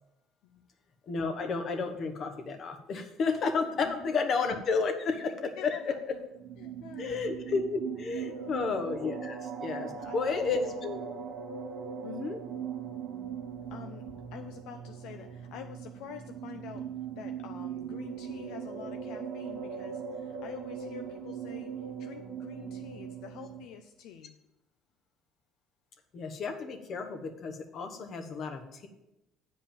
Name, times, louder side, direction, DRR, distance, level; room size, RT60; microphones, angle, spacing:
voice 1, 1.1-5.8 6.1-6.2 7.0-11.0 12.0-12.4 26.1-28.9, left 4 dB, 50° left, 6 dB, 1.2 m, -32 dB
voice 2, 3.8-4.1 5.6-6.3 6.6-7.2 8.2-8.6 9.2-9.3 9.8-10.5 13.7-16.9 17.2-24.4, left 8 dB, 75° left, 6 dB, 0.6 m, -47 dB
sound 1, 6.3-23.7, right 7 dB, 70° right, 1.3 m, -40 dB
8.7 x 5.0 x 7.3 m, 0.90 s
cardioid pair, 110°, 0 cm